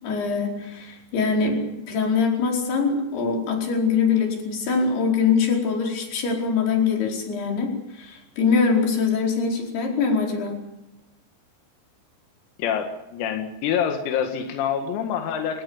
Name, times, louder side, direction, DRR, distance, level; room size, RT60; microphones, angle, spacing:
voice 1, 0.0-10.6, left 5 dB, 50° left, 2 dB, 6.4 m, -23 dB
voice 2, 12.6-15.6, left 8 dB, 90° left, 5 dB, 4.6 m, -26 dB
26.5 x 19.0 x 7.2 m, 0.91 s
omnidirectional pair, 6.0 m